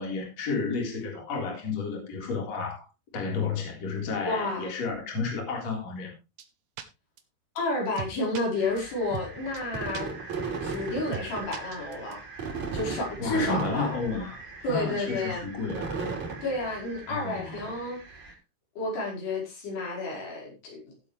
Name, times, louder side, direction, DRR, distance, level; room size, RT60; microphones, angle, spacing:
voice 1, 0.0-2.9 3.1-6.1 13.2-14.4 14.7-16.0 17.1-17.7, left 4 dB, 40° left, 4.7 m, -32 dB
voice 2, 4.2-4.7 7.6-10.1 10.6-12.2 12.7-14.0 14.6-15.5 16.4-18.0 18.8-20.8, left 2 dB, 75° left, 7.1 m, -31 dB
sound 1, 6.4-6.5 6.8-6.9 7.2-7.3 7.6-7.7 8.0-8.4 8.8-8.9 9.1-9.3 9.5-9.6 9.9-10.0 10.3-10.4 10.7-10.8 11.1-11.3 11.5-12.1, right 8 dB, 65° right, 1.8 m, -37 dB
sound 2, 8.6-18.3, right 4 dB, 45° right, 5.0 m, -37 dB
17.0 x 8.1 x 3.3 m
omnidirectional pair, 4.8 m